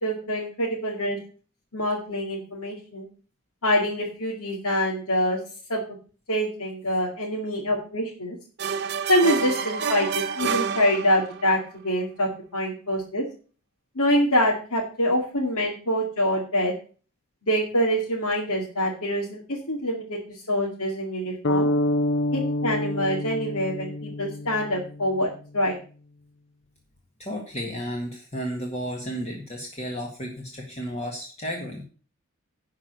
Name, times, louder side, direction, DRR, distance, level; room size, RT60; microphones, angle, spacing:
voice 1, 0.0-1.2 1.7-3.1 3.6-5.4 5.7-5.8 6.3-8.4 9.1-11.6 11.8-13.2 14.0-16.7 17.5-21.7 22.3-25.8, equal, 90° left, -3 dB, 2.4 m, -25 dB
sound 1, 8.6-11.5, right 6 dB, 50° right, 0.7 m, -28 dB
sound 2, 21.4-25.4, left 1 dB, 55° left, 0.6 m, -27 dB
voice 2, 27.2-31.8, equal, 30° left, 0 dB, 1.7 m, -33 dB
11.0 x 4.7 x 7.9 m, 0.39 s
head